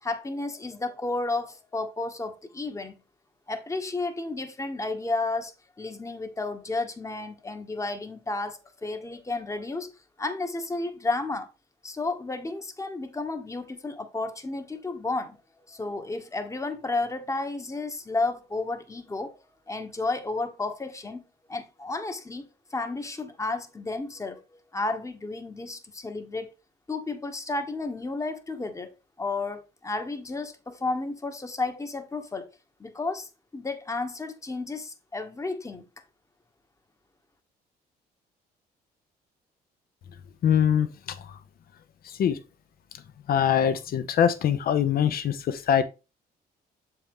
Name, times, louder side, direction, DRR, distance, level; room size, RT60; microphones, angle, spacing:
voice 1, 0.0-3.0 3.5-5.5 5.8-9.9 10.2-11.5 11.8-15.4 15.7-19.4 19.7-24.4 24.7-26.5 26.9-28.9 29.2-32.5 32.8-35.9, left 3 dB, 20° left, 1.2 m, -32 dB
voice 2, 40.4-41.2 42.2-42.4 43.3-45.8, left 9 dB, 65° left, 0.9 m, -23 dB
7.0 x 4.6 x 3.6 m
cardioid pair, 95°, 17 cm